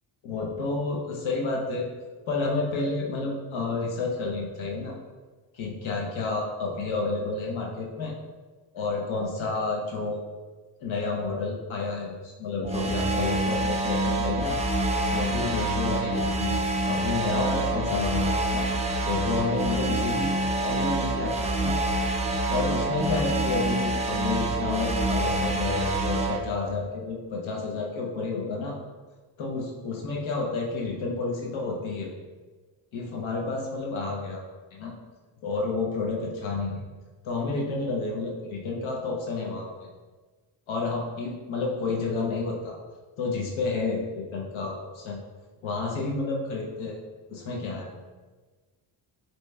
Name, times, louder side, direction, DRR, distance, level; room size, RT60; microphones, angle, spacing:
voice 1, 0.2-1.9 2.3-5.0 5.5-8.1 8.7-10.2 10.8-14.6 15.1-16.6 16.9-18.7 19.0-20.4 20.6-21.8 22.5-28.7 29.4-32.1 32.9-34.4 34.7-34.9 35.4-36.8 37.2-39.7 40.7-42.8 43.2-45.2 45.6-47.0 47.3-47.9, left 3 dB, 80° left, -1 dB, 0.8 m, -30 dB
sound 1, 12.6-26.4, right 1 dB, 15° right, 0.4 m, -26 dB
6.2 x 2.9 x 2.2 m, 1.4 s
cardioid pair, 90°, 47 cm